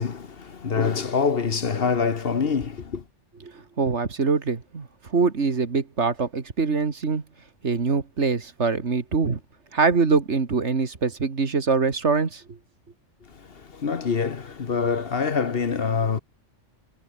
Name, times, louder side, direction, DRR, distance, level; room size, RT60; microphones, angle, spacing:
voice 1, 0.0-3.0 13.3-16.2, left 5 dB, 50° left, 1.3 m, -25 dB
voice 2, 3.5-7.2 7.6-9.4 9.7-12.6, right 4 dB, 65° right, 2.3 m, -24 dB
omnidirectional pair, 1.3 m